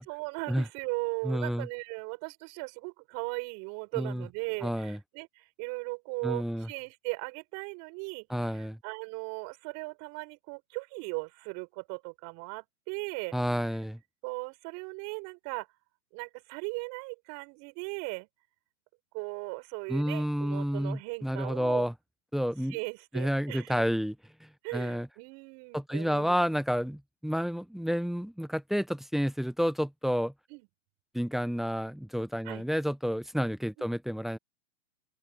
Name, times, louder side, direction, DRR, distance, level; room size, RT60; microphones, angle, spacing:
voice 1, 0.1-13.3 14.2-15.7 16.1-18.3 19.1-21.8 22.7-23.8 24.6-26.4 30.5-30.7 32.4-32.6 33.8-33.9, right 30 dB, 45° right, 6.7 m, -38 dB
voice 2, 1.2-1.7 4.0-4.3 4.6-5.0 6.2-6.7 8.3-8.8 13.3-14.0 19.9-21.9 22.3-22.8 23.1-24.1 24.4-25.1 25.7-30.3 31.1-34.4, equal, ahead, 0.8 m, -30 dB
hypercardioid pair, 125°, 39 cm